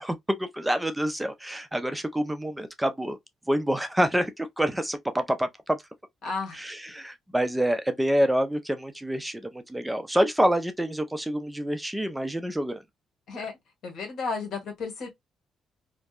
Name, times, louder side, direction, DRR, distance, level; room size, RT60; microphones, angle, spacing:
voice 1, 0.0-3.2 3.5-5.8 6.5-12.8, equal, 5° right, 0.4 m, -27 dB
voice 2, 6.2-6.6 13.3-13.5 13.8-15.1, left 4 dB, 70° left, 1.3 m, -33 dB
2.6 x 2.1 x 2.3 m
cardioid pair, 90°, 0 cm